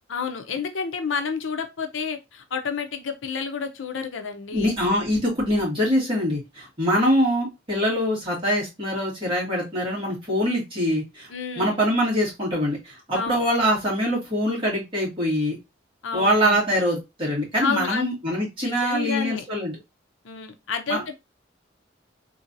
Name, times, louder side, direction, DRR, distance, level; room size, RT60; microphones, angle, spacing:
voice 1, 0.1-4.7 11.3-11.8 13.1-13.3 16.0-16.6 17.6-18.1 18.6-19.4 20.2-21.1, left 5 dB, 90° left, 0.6 m, -30 dB
voice 2, 4.5-11.3 11.6-15.6 16.1-19.7 20.9-21.0, equal, 30° right, 2.1 m, -24 dB
3.7 x 2.8 x 2.5 m
head